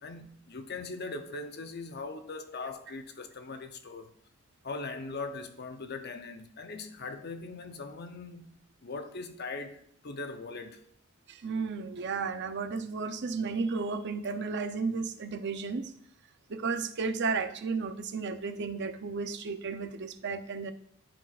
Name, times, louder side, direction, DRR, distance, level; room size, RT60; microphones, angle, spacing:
voice 1, 0.0-4.1 4.6-10.8, left 3 dB, 50° left, 0.7 m, -40 dB
voice 2, 11.3-15.9 16.5-20.7, right 4 dB, 55° right, 0.6 m, -33 dB
13.0 x 4.5 x 2.4 m
head